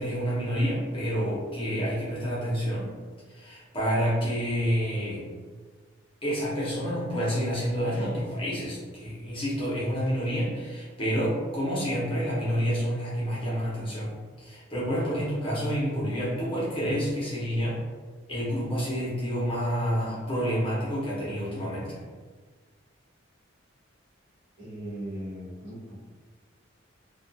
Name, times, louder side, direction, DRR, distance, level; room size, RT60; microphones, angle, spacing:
voice 1, 0.0-2.9 3.3-5.2 6.2-14.1 14.4-17.8 18.3-22.0, equal, 25° left, -7 dB, 0.7 m, -28 dB
voice 2, 24.6-26.0, equal, 65° right, -7 dB, 1.0 m, -38 dB
2.4 x 2.2 x 2.6 m, 1.4 s
head